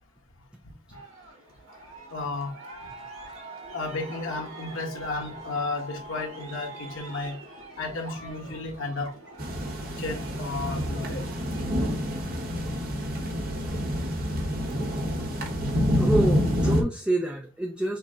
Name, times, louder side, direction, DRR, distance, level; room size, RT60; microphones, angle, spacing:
Aircraft, 0.9-12.6, right 2 dB, 80° right, 2.0 m, -44 dB
voice 1, 2.1-2.5 3.7-7.4 7.8-9.1 10.0-11.2 13.4-13.5, left 3 dB, 70° left, 1.3 m, -33 dB
sound 1, 9.4-16.8, equal, 45° right, 1.0 m, -27 dB
voice 2, 16.0-18.0, right 1 dB, 5° right, 0.4 m, -27 dB
6.2 x 2.1 x 3.6 m
head